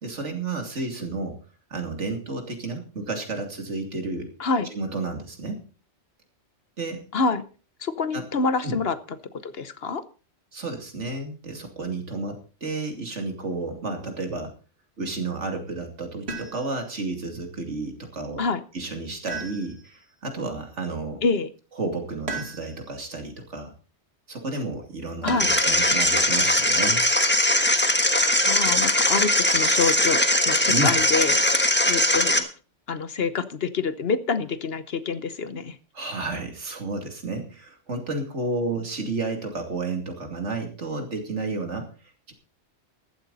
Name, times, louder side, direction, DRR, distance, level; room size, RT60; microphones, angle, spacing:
voice 1, 0.0-1.4 1.7-4.3 4.7-5.6 6.8-7.0 8.1-8.2 8.6-8.8 10.5-14.5 15.0-18.4 18.7-21.2 21.8-23.7 24.3-27.1 30.7-31.0 35.9-41.9 42.3-42.4, right 3 dB, 80° right, 5 dB, 3.0 m, -31 dB
voice 2, 7.1-7.4 7.8-9.0 9.4-10.0 18.4-18.6 21.2-21.5 25.2-25.5 28.5-31.4 31.8-32.5 32.9-35.8, left 4 dB, 60° left, 13 dB, 1.2 m, -26 dB
sound 1, 16.3-16.9 19.3-20.1 22.3-23.0 25.3-25.8 27.5-28.1, right 3 dB, 60° right, 2.5 m, -35 dB
sound 2, 25.4-32.4, left 1 dB, 10° left, 1.3 m, -20 dB
15.0 x 12.5 x 4.1 m, 0.36 s
omnidirectional pair, 1.2 m